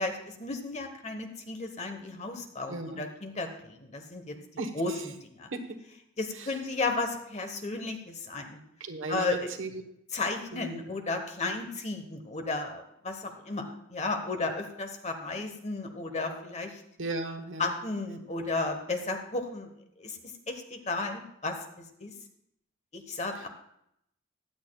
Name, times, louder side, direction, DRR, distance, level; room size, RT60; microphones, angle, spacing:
voice 1, 0.0-4.4 4.7-5.5 6.2-8.6 9.1-9.5 10.1-13.6 13.9-16.8 17.6-19.7 20.0-20.2 20.5-21.6 22.0-22.1 22.9-23.5, left 3 dB, 30° left, 5 dB, 1.1 m, -34 dB
voice 2, 2.7-3.0 4.6-4.7 5.5-5.6 8.8-9.8 10.5-10.8 17.0-17.7, right 2 dB, 70° right, 5 dB, 1.1 m, -35 dB
15.5 x 10.5 x 2.3 m, 0.77 s
head